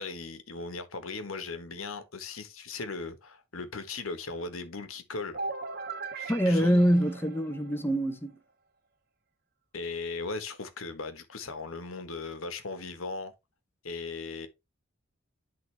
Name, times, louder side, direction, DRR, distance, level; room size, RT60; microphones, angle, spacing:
voice 1, 0.0-5.4 6.1-6.8 9.7-13.3 13.8-14.5, left 3 dB, 80° left, 1.3 m, -38 dB
sound 1, 5.3-8.1, right 4 dB, 45° right, 0.6 m, -39 dB
voice 2, 6.3-8.4, equal, 10° left, 0.7 m, -25 dB
11.0 x 3.8 x 3.3 m
head